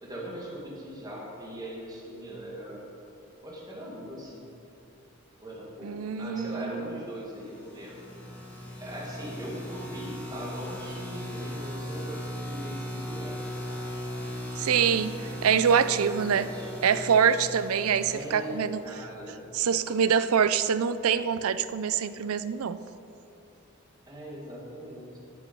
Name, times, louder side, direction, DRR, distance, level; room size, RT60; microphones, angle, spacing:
voice 1, 0.0-2.8 3.4-4.5 5.4-8.0 8.8-13.9 14.2-14.4 16.0-16.7 18.0-19.4 24.1-25.2, equal, 20° right, -4 dB, 2.0 m, -40 dB
voice 2, 5.8-7.0 14.6-16.5 16.8-18.8 19.5-22.8, right 7 dB, 85° right, 14 dB, 0.4 m, -25 dB
sound 1, 7.3-19.1, left 1 dB, 5° left, 1.4 m, -38 dB
13.0 x 7.0 x 5.4 m, 2.8 s
head